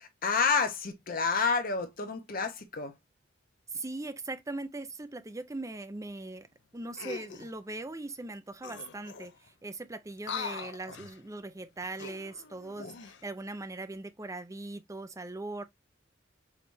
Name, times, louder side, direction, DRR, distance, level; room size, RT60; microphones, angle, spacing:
voice 1, 0.2-2.9, left 5 dB, 50° left, 0.9 m, -29 dB
voice 2, 3.7-6.5 6.7-9.3 9.6-15.6, right 2 dB, 15° right, 0.6 m, -40 dB
sound 1, 6.9-7.5 8.3-8.4 8.6-9.5 10.2-11.2 11.8-13.2 13.8-14.0, left 5 dB, 65° left, 0.6 m, -42 dB
4.9 x 3.3 x 2.6 m
head